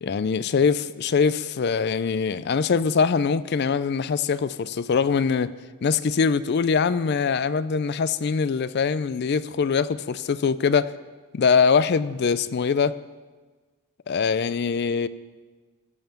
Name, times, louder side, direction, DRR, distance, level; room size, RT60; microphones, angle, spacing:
voice 1, 0.0-5.6 5.8-10.9 11.3-12.9 14.1-15.1, left 5 dB, 50° left, 16 dB, 0.4 m, -23 dB
14.5 x 5.5 x 7.1 m, 1.4 s
head